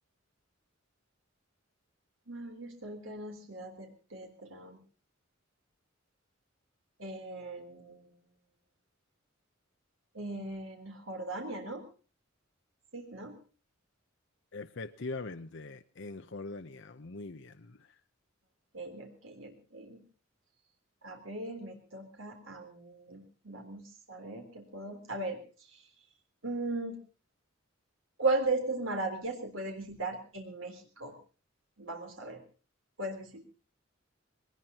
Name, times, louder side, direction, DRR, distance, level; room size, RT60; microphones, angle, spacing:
voice 1, 2.3-4.8 7.0-8.1 10.1-11.8 12.9-13.4 18.7-20.0 21.0-23.8 24.1-25.4 25.7-25.8 26.4-27.0 28.2-31.2 31.8-32.4 33.0-33.4, right 2 dB, 75° right, 3 dB, 3.7 m, -37 dB
voice 2, 14.5-17.9, left 3 dB, 60° left, 8 dB, 0.8 m, -42 dB
22.0 x 19.5 x 2.9 m, 0.37 s
head